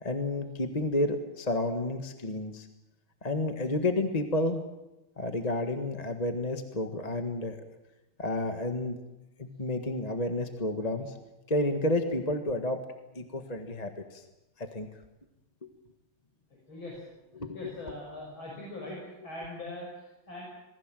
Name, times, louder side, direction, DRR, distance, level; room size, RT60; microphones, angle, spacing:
voice 1, 0.0-2.7 3.2-4.6 5.2-7.6 8.2-9.0 9.4-11.2 11.5-12.8 13.1-14.2 14.6-14.9 15.6-15.7 17.3-17.8 18.9-19.0, left 1 dB, 20° left, 6 dB, 1.4 m, -31 dB
voice 2, 16.7-17.1 17.5-19.0 19.2-20.4, left 1 dB, 65° left, -2 dB, 7.2 m, -41 dB
27.0 x 20.0 x 7.6 m, 0.99 s
omnidirectional pair, 2.4 m